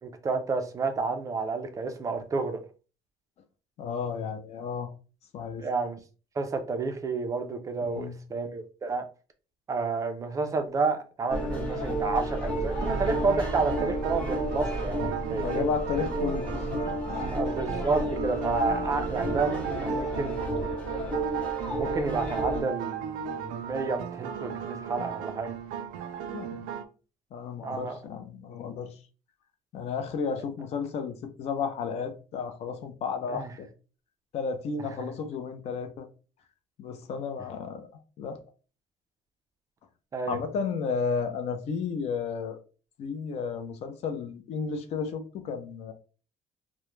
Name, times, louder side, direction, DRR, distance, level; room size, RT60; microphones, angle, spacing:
voice 1, 0.0-2.6 5.6-6.0 6.4-9.1 9.7-15.6 17.3-20.5 21.8-25.5 27.6-27.9 33.3-33.5 40.1-40.4, right 4 dB, 25° right, 0.4 m, -30 dB
voice 2, 3.8-4.9 5.3-5.7 7.9-8.2 15.3-17.4 17.7-17.9 26.3-26.7 27.3-29.0 29.7-33.7 34.3-36.1 36.8-37.9 38.2-38.4 40.3-42.6 43.0-45.9, left 5 dB, 50° left, 0.5 m, -33 dB
sound 1, 11.3-22.6, right 1 dB, 10° left, 0.7 m, -31 dB
sound 2, 12.8-26.9, right 8 dB, 90° right, 0.4 m, -36 dB
2.2 x 2.1 x 3.0 m
cardioid pair, 150°, 14 cm